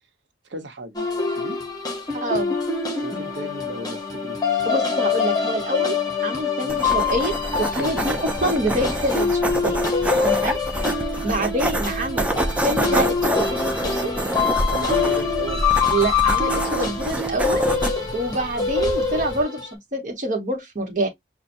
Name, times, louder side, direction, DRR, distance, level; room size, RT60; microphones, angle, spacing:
voice 1, 0.5-1.0 1.3-1.6 3.0-4.4 6.6-6.8 7.8-8.0 10.1-10.3 11.4-11.5 14.7-15.6, right 2 dB, 85° right, 0.9 m, -34 dB
sound 1, 1.0-19.7, left 5 dB, 20° left, 0.9 m, -25 dB
voice 2, 2.1-2.5 4.6-6.0 6.2-9.8 10.2-10.6 11.2-14.1 15.9-17.6 18.1-21.1, right 1 dB, 45° right, 1.2 m, -26 dB
sound 2, 6.7-19.4, right 1 dB, 10° right, 0.6 m, -27 dB
5.7 x 2.2 x 2.6 m
head